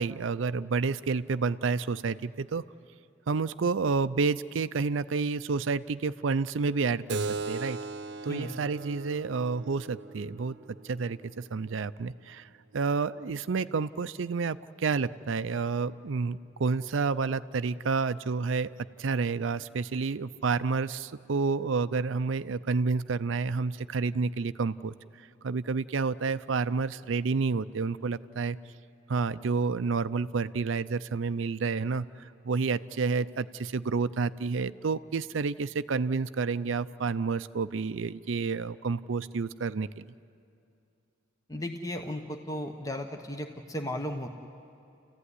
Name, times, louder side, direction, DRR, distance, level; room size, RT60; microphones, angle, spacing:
voice 1, 0.0-2.6 3.3-7.8 8.2-10.6 10.8-18.7 19.0-24.9 25.4-28.6 29.1-40.1, right 4 dB, 75° right, 14 dB, 0.5 m, -29 dB
Keyboard (musical), 7.1-12.2, right 3 dB, 55° right, 0.8 m, -39 dB
voice 2, 41.5-44.3, left 1 dB, 15° left, 3 dB, 1.0 m, -35 dB
30.0 x 15.0 x 9.8 m, 2.6 s
head